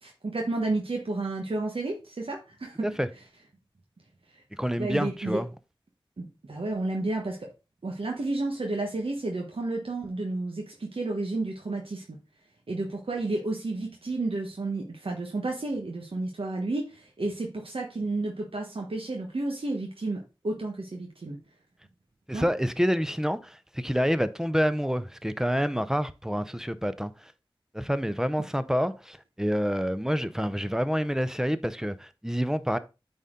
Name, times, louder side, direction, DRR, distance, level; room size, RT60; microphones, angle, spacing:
voice 1, 0.0-2.9 4.3-4.4 4.8-5.4 6.2-7.5 7.8-12.2 12.7-21.4 22.3-22.5 28.4-28.5, right 2 dB, 85° right, 1.2 m, -31 dB
voice 2, 4.6-5.5 22.3-27.3 27.7-32.8, equal, 5° right, 0.6 m, -28 dB
8.9 x 4.3 x 3.7 m
wide cardioid pair, 55°, 9 cm